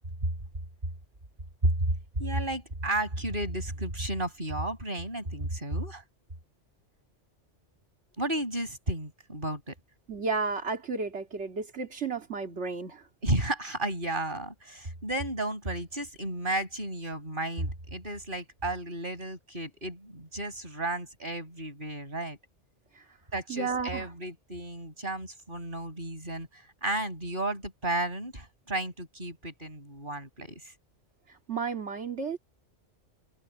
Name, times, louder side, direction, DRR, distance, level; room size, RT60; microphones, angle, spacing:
voice 1, 2.2-6.0 8.2-9.8 13.2-22.4 23.3-30.7, right 1 dB, 45° right, 5.9 m, -33 dB
voice 2, 10.1-13.1 22.9-23.0 23.5-24.1 31.3-32.4, right 4 dB, 70° right, 2.5 m, -33 dB
omnidirectional pair, 1.2 m